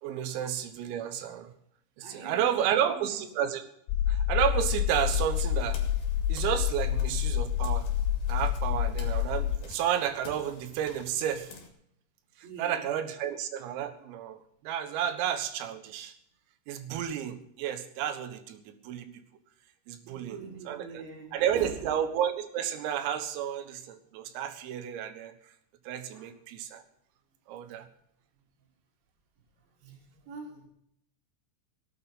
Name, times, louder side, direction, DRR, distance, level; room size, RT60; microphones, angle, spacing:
voice 1, 0.0-1.5 2.0-3.7 4.1-5.8 6.3-7.9 8.3-11.5 12.6-16.1 16.7-19.1 19.9-20.4 20.7-21.0 21.3-25.3 25.9-26.8 27.5-27.9, right 10 dB, 80° right, 9 dB, 4.0 m, -31 dB
voice 2, 2.0-3.2 12.4-12.9 15.0-15.1 20.0-21.9 23.1-23.2 24.3-24.4 26.1-26.3 29.8-30.7, right 4 dB, 50° right, -1 dB, 5.3 m, -44 dB
sound 1, 3.9-9.6, left 10 dB, 85° left, 3.6 m, -28 dB
sound 2, 5.1-11.7, left 5 dB, 60° left, 4.5 m, -50 dB
18.0 x 9.4 x 5.6 m, 0.72 s
omnidirectional pair, 6.0 m